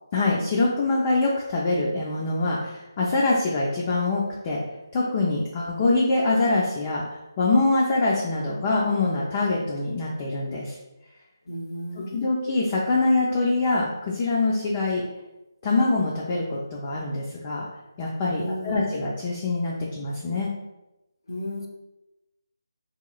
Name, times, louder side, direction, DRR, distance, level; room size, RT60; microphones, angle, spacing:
voice 1, 0.1-4.6 4.9-7.0 7.4-10.7 12.1-15.0 15.6-17.7 18.0-20.5, left 2 dB, 20° left, -4 dB, 0.3 m, -24 dB
voice 2, 11.5-12.3 18.4-19.0 21.3-21.7, left 1 dB, 70° left, 2 dB, 0.6 m, -33 dB
3.2 x 2.9 x 2.3 m, 0.97 s
figure-of-eight pair, 170°, 2 cm